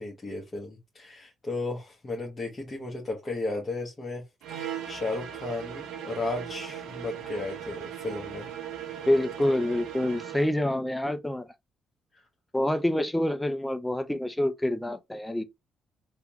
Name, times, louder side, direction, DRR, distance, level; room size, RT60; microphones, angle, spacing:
voice 1, 0.0-4.2 4.5-8.5 12.1-12.2, left 2 dB, 30° left, 1.1 m, -34 dB
sound 1, 4.4-10.6, right 9 dB, 90° right, 0.8 m, -38 dB
voice 2, 9.1-11.5 12.5-15.4, left 1 dB, 5° left, 0.5 m, -27 dB
3.6 x 2.3 x 2.9 m
cardioid pair, 90°, 0 cm